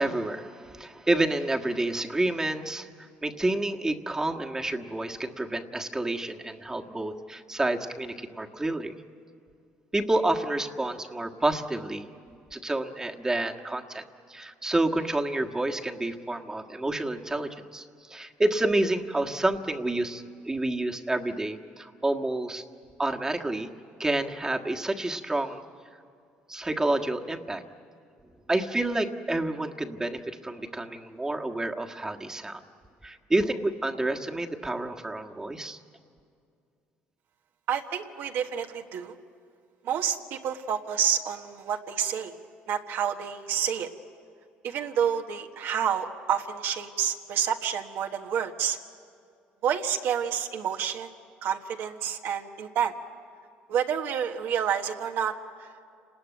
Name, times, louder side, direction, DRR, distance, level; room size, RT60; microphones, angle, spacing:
voice 1, 0.0-8.9 9.9-12.1 12.5-22.6 23.0-23.7 24.0-25.6 26.5-27.6 28.5-32.6 33.0-35.8, right 2 dB, 15° right, 3 dB, 1.6 m, -29 dB
voice 2, 37.7-39.1 39.8-42.3 42.7-43.9 44.6-48.8 49.6-51.1 51.4-53.0 53.7-55.7, right 8 dB, 70° right, 3 dB, 1.4 m, -29 dB
29.0 x 20.0 x 9.2 m, 2.4 s
supercardioid pair, 90°, 4 cm